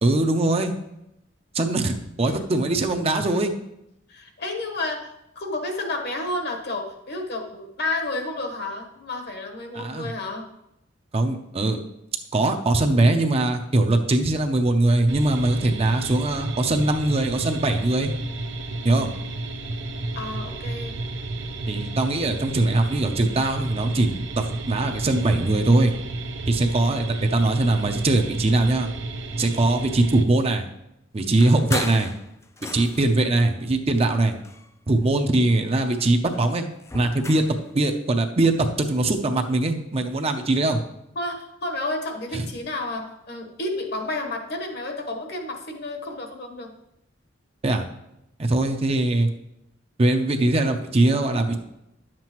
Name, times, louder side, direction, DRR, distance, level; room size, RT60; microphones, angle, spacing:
voice 1, 0.0-0.7 1.5-3.5 9.7-10.1 11.1-11.8 12.3-18.1 18.8-19.1 21.7-25.9 26.5-28.9 29.4-30.7 31.1-32.1 32.6-34.3 34.9-36.6 36.9-37.4 37.7-40.8 42.3-42.4 47.6-47.9 48.4-49.3 50.0-51.6, right 2 dB, 30° right, 5 dB, 0.6 m, -21 dB
voice 2, 4.1-5.1 5.3-10.5 20.1-21.0 41.1-46.7, left 2 dB, 55° left, 3 dB, 1.2 m, -31 dB
sound 1, 15.1-30.2, right 2 dB, 65° right, 0.7 m, -32 dB
sound 2, 31.4-33.2 33.9-35.1 35.4-37.6, left 3 dB, 15° left, 0.4 m, -37 dB
10.5 x 7.5 x 3.0 m, 0.85 s
head